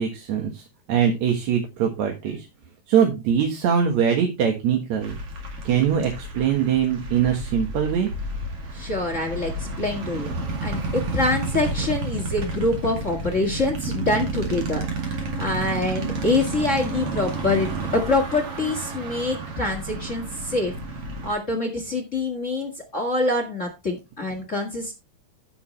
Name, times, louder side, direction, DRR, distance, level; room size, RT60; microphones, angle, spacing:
voice 1, 0.0-2.5 2.9-5.2 5.6-8.1, right 8 dB, 70° right, 3 dB, 2.7 m, -22 dB
sound 1, 5.0-21.3, right 2 dB, 55° right, 3.0 m, -31 dB
voice 2, 8.7-10.3 10.6-20.7 21.2-24.9, left 2 dB, 30° left, 4 dB, 1.8 m, -25 dB
14.0 x 6.9 x 3.2 m, 0.25 s
omnidirectional pair, 3.4 m